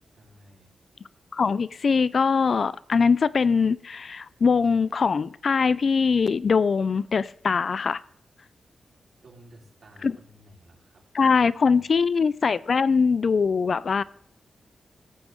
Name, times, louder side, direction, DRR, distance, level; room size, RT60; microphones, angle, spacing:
voice 1, 0.2-0.7 9.2-12.0, right 1 dB, 50° right, 3.6 m, -54 dB
voice 2, 1.3-8.0 10.0-10.2 11.1-14.0, left 5 dB, 55° left, 0.3 m, -22 dB
17.0 x 7.6 x 3.6 m
wide cardioid pair, 105°, 0 cm